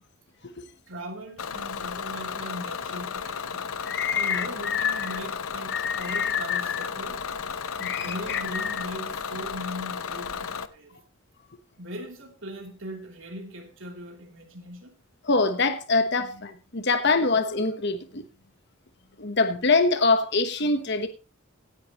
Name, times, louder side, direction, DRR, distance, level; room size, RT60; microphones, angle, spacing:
voice 1, 0.9-3.7 4.1-7.3 7.8-11.0 11.8-14.9, equal, 60° right, 3.3 m, -39 dB
Bus / Engine, 1.4-10.7, left 6 dB, 75° left, 0.8 m, -34 dB
voice 2, 3.9-5.1 5.7-6.9 7.8-8.8 15.2-18.2 19.2-21.1, left 4 dB, 50° left, 1.1 m, -25 dB
17.0 x 10.5 x 3.0 m
head